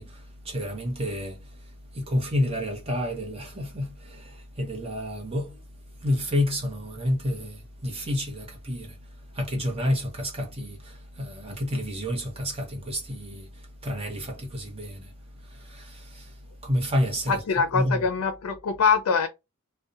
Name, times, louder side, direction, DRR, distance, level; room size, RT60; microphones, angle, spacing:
voice 1, 0.0-17.4 17.7-18.0, left 1 dB, 25° right, 0.7 m, -30 dB
voice 2, 17.3-19.3, left 5 dB, 80° left, 0.4 m, -23 dB
2.6 x 2.1 x 2.4 m
head